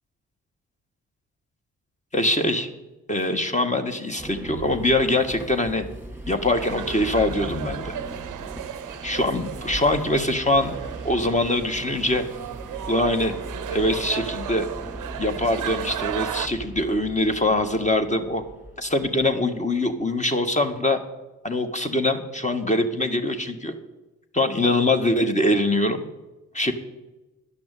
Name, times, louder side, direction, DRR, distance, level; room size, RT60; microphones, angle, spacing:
voice 1, 2.1-2.7 3.1-5.9 6.3-8.0 9.0-10.7 11.0-12.2 12.9-13.3 13.7-14.7 15.2-18.4 18.8-21.0 21.4-23.7 24.3-26.0 26.5-26.7, left 1 dB, 20° left, 6 dB, 1.6 m, -23 dB
sound 1, 4.2-19.3, right 1 dB, 5° right, 2.2 m, -39 dB
sound 2, 6.3-16.5, right 10 dB, 60° right, 0.6 m, -35 dB
11.5 x 6.0 x 9.1 m, 1.1 s
supercardioid pair, 45°, 34 cm